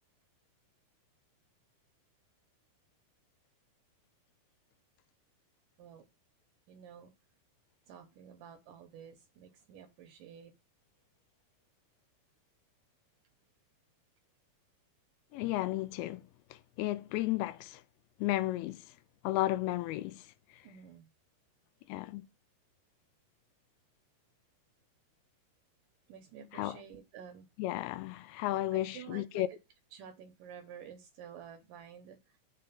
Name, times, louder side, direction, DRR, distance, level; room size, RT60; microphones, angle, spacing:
voice 1, 6.7-7.1 7.9-10.5 20.6-21.1 26.1-27.5 28.7-29.5 29.9-32.4, right 8 dB, 80° right, 2.0 m, -51 dB
voice 2, 15.3-17.8 18.2-18.9 19.2-20.3 20.5-20.6 21.9-22.2 26.5-26.8 27.6-29.5, left 16 dB, 85° left, 2.5 m, -34 dB
6.6 x 3.7 x 5.6 m
omnidirectional pair, 4.5 m